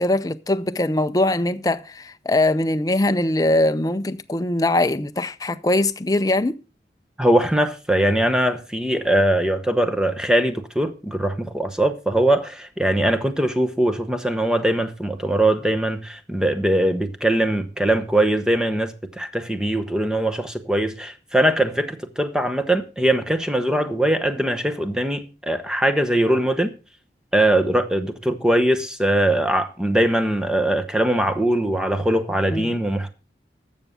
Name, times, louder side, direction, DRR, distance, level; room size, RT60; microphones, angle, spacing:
voice 1, 0.0-6.6 32.5-32.7, left 2 dB, 20° left, 0.5 m, -21 dB
voice 2, 7.2-26.7 27.3-33.1, right 1 dB, 5° right, 0.9 m, -21 dB
12.5 x 7.2 x 5.6 m
head